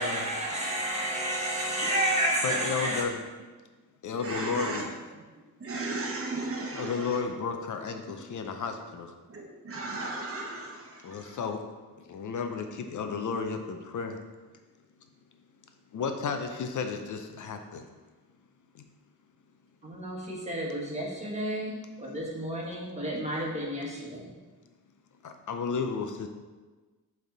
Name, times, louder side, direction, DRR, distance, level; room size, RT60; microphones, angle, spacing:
voice 1, 0.0-3.0 19.8-24.3, right 1 dB, 20° right, -4 dB, 1.5 m, -31 dB
voice 2, 2.4-3.2 4.0-4.8 6.7-9.1 11.0-11.6 12.1-14.2 15.9-17.8 25.2-26.3, left 5 dB, 60° left, 6 dB, 0.6 m, -33 dB
voice 3, 4.2-5.2 5.6-7.2 8.1-8.2 9.3-11.4, right 2 dB, 40° right, -1 dB, 1.0 m, -36 dB
7.5 x 3.5 x 3.9 m, 1.3 s
wide cardioid pair, 125°, 34 cm